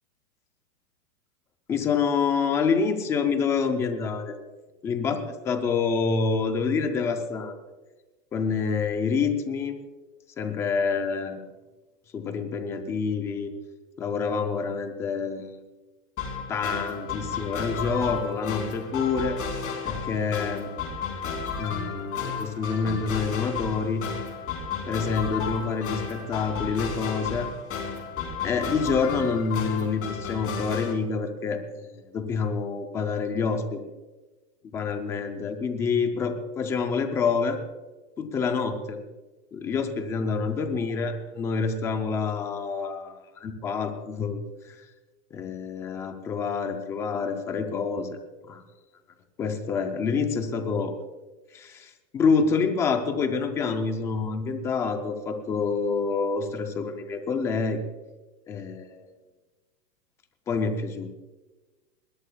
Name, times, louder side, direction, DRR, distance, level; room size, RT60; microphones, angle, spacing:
voice 1, 1.7-4.4 4.8-5.2 5.4-7.6 8.3-9.8 10.4-11.4 12.1-13.5 14.0-15.6 16.5-19.4 19.8-20.7 21.6-24.0 24.9-27.5 28.4-33.9 34.7-37.6 38.2-39.0 39.5-44.9 45.3-48.2 48.5-48.6 49.4-50.9 51.5-57.8 58.5-59.1 60.5-61.1, left 5 dB, 5° left, 7 dB, 0.3 m, -27 dB
sound 1, 16.2-30.9, left 5 dB, 25° left, 4.0 m, -33 dB
21.5 x 19.5 x 2.3 m, 1.2 s
hypercardioid pair, 130°, 49 cm